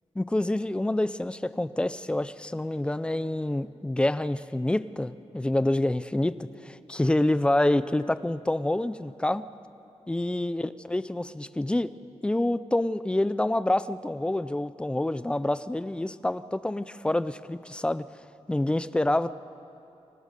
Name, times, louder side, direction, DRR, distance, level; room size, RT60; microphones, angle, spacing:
voice 1, 0.2-9.5 10.1-11.9 12.2-18.1 18.5-19.3, left 1 dB, 10° left, 14 dB, 0.4 m, -27 dB
29.5 x 21.5 x 5.3 m, 2.8 s
wide cardioid pair, 175°, 11 cm